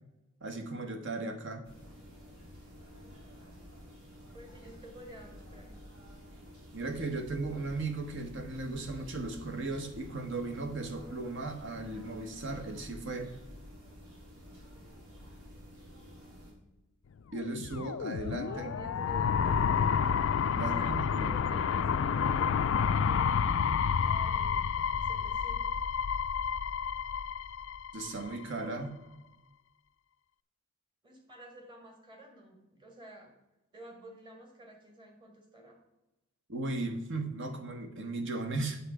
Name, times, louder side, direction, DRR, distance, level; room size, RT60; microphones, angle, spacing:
voice 1, 0.4-1.7 6.7-13.3 17.3-18.7 20.5-21.4 27.9-29.0 36.5-38.8, right 2 dB, 55° right, 5 dB, 1.2 m, -36 dB
sound 1, 1.6-16.5, equal, 80° right, 2.7 m, -50 dB
voice 2, 4.3-5.8 18.5-19.8 20.5-25.8 31.0-33.3 33.7-35.8, right 1 dB, 20° right, 2 dB, 1.8 m, -51 dB
sound 2, 17.4-28.3, left 6 dB, 60° left, 0.3 m, -29 dB
8.4 x 6.9 x 4.9 m, 0.98 s
head